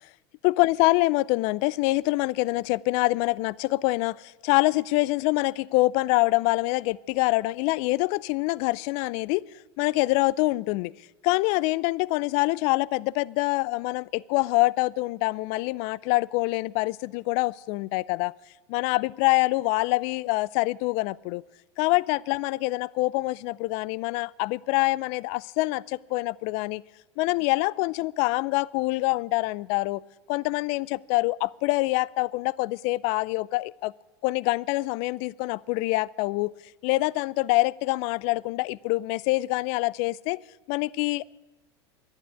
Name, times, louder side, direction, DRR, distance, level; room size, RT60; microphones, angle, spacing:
voice 1, 0.4-9.5 9.8-10.9 11.2-18.3 18.7-21.4 21.8-26.8 27.2-30.0 30.3-33.9 34.2-36.5 36.8-40.4 40.7-41.2, left 21 dB, 55° left, 0.4 m, -25 dB
11.5 x 11.0 x 9.9 m
hypercardioid pair, 95°, 14 cm